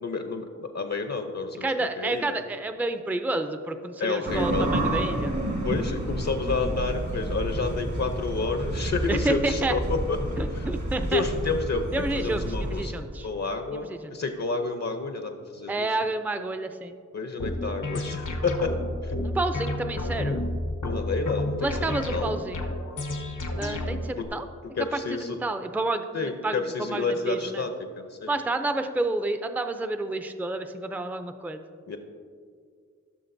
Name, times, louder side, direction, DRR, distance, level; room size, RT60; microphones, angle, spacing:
voice 1, 0.0-2.4 4.0-4.7 5.6-10.2 10.5-10.7 11.1-15.9 17.1-18.7 19.0-19.1 20.8-22.3 24.2-24.3 24.8-25.4 26.1-27.7 28.0-28.4 31.9-32.0, left 4 dB, 60° left, 5 dB, 0.7 m, -30 dB
voice 2, 1.6-5.4 9.1-9.8 10.4-11.2 11.9-13.3 13.7-14.0 15.7-17.0 19.2-20.4 21.6-22.7 23.6-24.5 24.9-27.6 28.3-31.6, right 2 dB, 5° right, 8 dB, 0.4 m, -30 dB
sound 1, 4.3-12.8, right 1 dB, 70° right, 1.4 m, -30 dB
sound 2, 17.4-24.2, left 1 dB, 85° left, 1.0 m, -31 dB
15.0 x 6.3 x 2.6 m, 2.1 s
wide cardioid pair, 60°, 30 cm